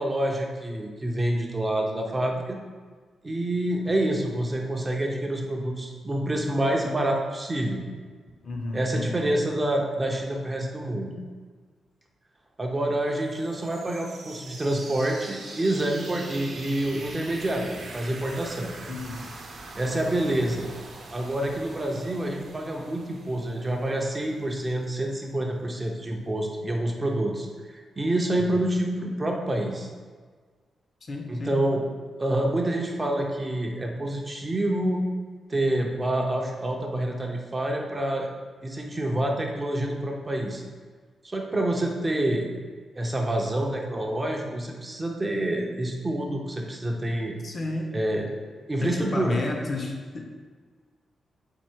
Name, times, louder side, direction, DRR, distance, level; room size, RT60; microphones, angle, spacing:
voice 1, 0.0-2.6 3.2-7.8 8.7-11.2 12.6-18.7 19.7-20.7 21.1-29.9 31.3-31.8 32.2-35.1 35.5-38.3 38.6-40.6 41.2-42.5 43.0-47.4 47.9-49.4, right 1 dB, 20° right, 1 dB, 0.4 m, -27 dB
voice 2, 8.4-9.3 18.9-19.3 28.4-28.5 31.0-31.6 47.4-48.0 48.8-50.3, left 2 dB, 40° left, 2 dB, 0.5 m, -32 dB
sound 1, 13.1-24.8, right 2 dB, 60° right, 0.7 m, -43 dB
4.3 x 2.5 x 4.4 m, 1.5 s
wide cardioid pair, 140°, 0 cm